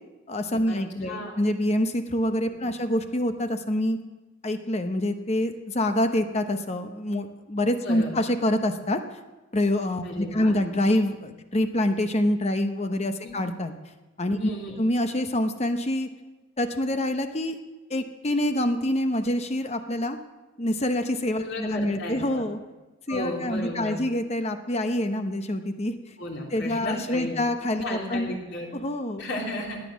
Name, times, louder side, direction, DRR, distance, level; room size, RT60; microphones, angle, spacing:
voice 1, 0.3-4.0 4.4-9.0 9.5-13.7 14.2-16.1 16.6-17.6 17.9-20.2 20.6-22.6 23.1-26.0 26.5-28.3 28.7-29.3, left 1 dB, 30° left, 8 dB, 0.8 m, -26 dB
voice 2, 1.0-1.4 7.8-8.1 10.0-10.6 13.2-13.3 14.4-14.8 21.4-22.4 23.1-24.0 26.2-27.4 27.8-28.7 29.2-29.8, left 1 dB, 55° left, -1 dB, 3.2 m, -34 dB
17.5 x 10.0 x 6.2 m, 1.1 s
head